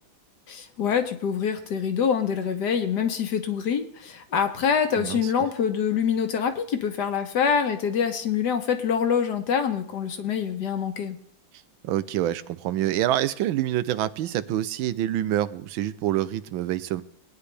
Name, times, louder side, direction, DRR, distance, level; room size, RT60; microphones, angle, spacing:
voice 1, 0.5-11.2, left 7 dB, 60° left, 7 dB, 1.5 m, -25 dB
voice 2, 5.0-5.3 11.8-17.0, right 13 dB, 85° right, 15 dB, 1.4 m, -26 dB
21.5 x 9.6 x 3.4 m, 0.67 s
omnidirectional pair, 2.1 m